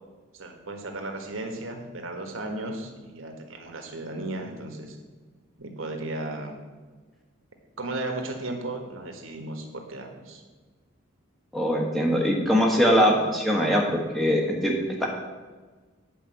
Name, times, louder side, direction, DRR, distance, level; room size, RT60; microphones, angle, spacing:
voice 1, 0.3-5.0 5.6-6.6 7.8-10.4, right 2 dB, 80° right, 3 dB, 1.5 m, -35 dB
voice 2, 11.5-14.7 15.0-15.1, equal, ahead, -1 dB, 1.3 m, -22 dB
8.8 x 5.1 x 7.6 m, 1.4 s
head